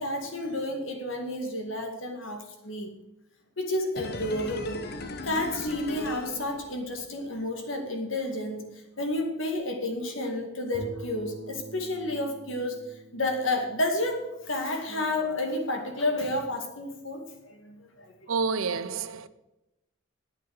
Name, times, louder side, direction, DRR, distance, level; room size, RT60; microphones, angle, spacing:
voice 1, 0.0-2.9 3.6-4.8 5.2-12.8 13.1-18.3, left 1 dB, 70° left, 2.1 m, -31 dB
sound 1, 4.0-7.1 7.4-7.5, left 2 dB, 50° left, 1.0 m, -38 dB
Bowed string instrument, 10.7-15.0, right 1 dB, 45° right, 1.8 m, -46 dB
voice 2, 18.3-19.3, right 4 dB, 85° right, 0.7 m, -29 dB
9.0 x 8.6 x 6.5 m
head